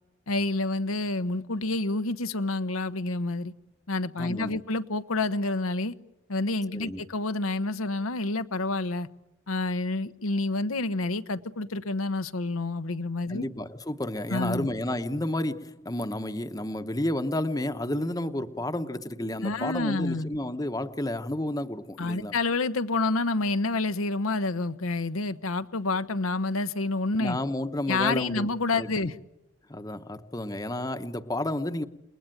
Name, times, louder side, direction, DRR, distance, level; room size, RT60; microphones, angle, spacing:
voice 1, 0.3-3.5 3.9-5.9 6.3-9.1 9.5-13.4 14.3-14.7 19.4-20.3 22.0-27.4 27.9-29.2, left 2 dB, 90° left, 1.0 m, -28 dB
voice 2, 4.2-4.6 6.7-7.0 13.3-22.3 27.2-28.5 28.8-29.1 29.7-31.9, left 1 dB, 15° left, 0.9 m, -31 dB
29.0 x 21.0 x 9.1 m
head